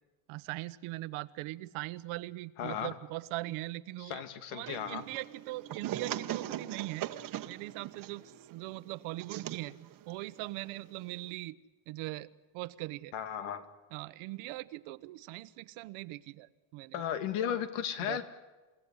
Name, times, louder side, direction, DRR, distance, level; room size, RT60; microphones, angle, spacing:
voice 1, 0.3-4.2 4.5-7.1 7.4-8.2 8.5-9.7 10.1-11.5 11.9-12.3 12.5-13.1 13.9-17.0 18.0-18.2, right 18 dB, 90° right, 15 dB, 1.2 m, -40 dB
voice 2, 2.6-2.9 4.0-5.0 13.1-13.6 16.9-18.2, left 9 dB, 85° left, 10 dB, 2.7 m, -35 dB
sound 1, 4.7-11.3, right 12 dB, 45° right, 1.2 m, -41 dB
29.5 x 17.0 x 9.8 m, 1.2 s
cardioid pair, 170°, 48 cm